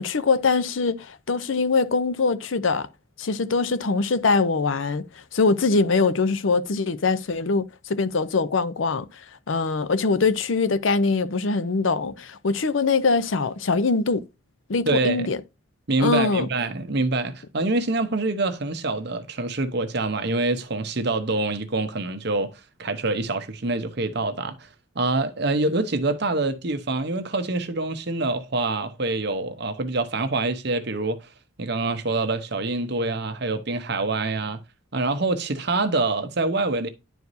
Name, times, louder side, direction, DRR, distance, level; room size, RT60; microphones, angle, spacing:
voice 1, 0.0-2.9 3.2-5.0 5.3-9.1 9.5-14.2 14.7-15.4 16.0-16.5, left 4 dB, 75° left, 0.6 m, -23 dB
voice 2, 14.9-15.3 15.9-24.5 25.0-31.2 31.6-34.6 34.9-36.9, right 2 dB, 55° right, 0.9 m, -25 dB
11.0 x 4.6 x 2.7 m
head